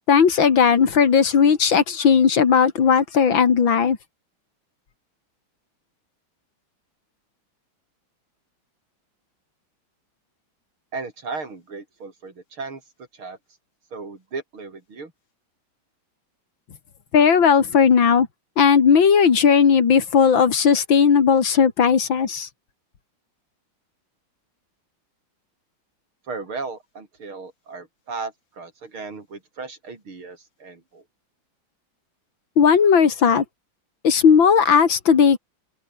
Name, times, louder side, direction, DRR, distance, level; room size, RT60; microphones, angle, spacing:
voice 1, 0.1-4.0 17.1-18.3 18.6-22.5 32.6-33.4 34.0-35.4, left 6 dB, 65° left, 2.8 m, -16 dB
voice 2, 10.9-12.8 13.1-13.4 13.9-15.1 26.3-31.0, right 4 dB, 80° right, 5.2 m, -35 dB
open air
omnidirectional pair, 2.3 m